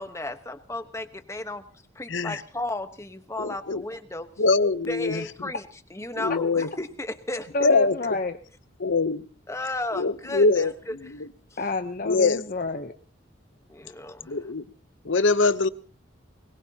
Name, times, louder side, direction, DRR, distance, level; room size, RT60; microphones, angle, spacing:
voice 1, 0.0-1.6 1.9-4.3 4.9-5.6 5.9-7.5 9.5-11.0 13.7-14.4, left 2 dB, 15° left, 1.1 m, -34 dB
voice 2, 2.1-2.4 3.4-3.8 4.4-5.5 6.1-6.7 7.6-7.9 8.8-9.2 9.9-10.7 11.0-11.3 12.1-12.4 14.3-14.6 15.0-15.7, left 3 dB, 75° left, 0.8 m, -23 dB
voice 3, 7.5-8.4 11.6-12.9, left 3 dB, 45° left, 0.8 m, -28 dB
22.0 x 21.0 x 2.9 m
head